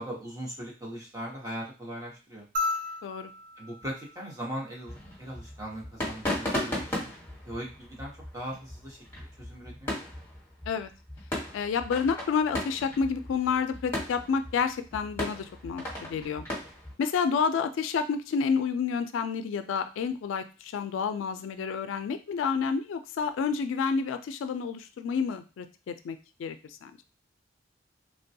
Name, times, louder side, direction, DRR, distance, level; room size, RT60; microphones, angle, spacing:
voice 1, 0.0-2.4 3.6-7.1 7.5-10.2, right 1 dB, 20° right, -3 dB, 0.9 m, -39 dB
sound 1, 2.5-5.1 6.7-6.8, left 3 dB, 45° right, 0.6 m, -35 dB
sound 2, 4.9-16.9, left 1 dB, 10° left, 1.2 m, -37 dB
voice 2, 11.5-16.5 17.0-26.6 26.8-26.9, left 6 dB, 85° left, 10 dB, 0.3 m, -29 dB
3.1 x 2.2 x 2.7 m, 0.32 s
head